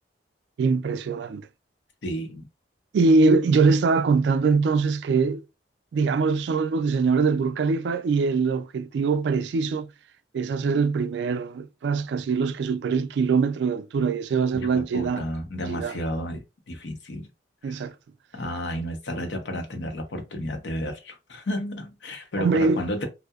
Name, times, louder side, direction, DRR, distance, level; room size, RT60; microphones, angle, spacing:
voice 1, 0.6-1.5 2.9-5.4 5.9-9.9 10.3-15.2 15.7-16.0 17.6-18.0 22.4-22.8, right 4 dB, 75° right, 0.3 m, -23 dB
voice 2, 2.0-2.5 14.5-17.3 17.6-17.8 18.3-23.1, equal, 80° left, 0.7 m, -32 dB
2.7 x 2.0 x 2.3 m
head